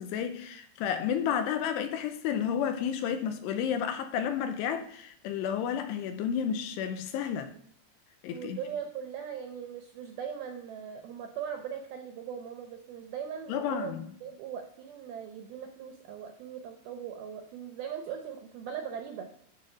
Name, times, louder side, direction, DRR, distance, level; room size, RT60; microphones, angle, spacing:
voice 1, 0.0-7.5 8.2-8.6 13.5-14.1, left 8 dB, 80° left, 2.7 m, -31 dB
voice 2, 8.3-19.3, right 8 dB, 80° right, 2.2 m, -40 dB
13.0 x 4.6 x 4.9 m
omnidirectional pair, 5.2 m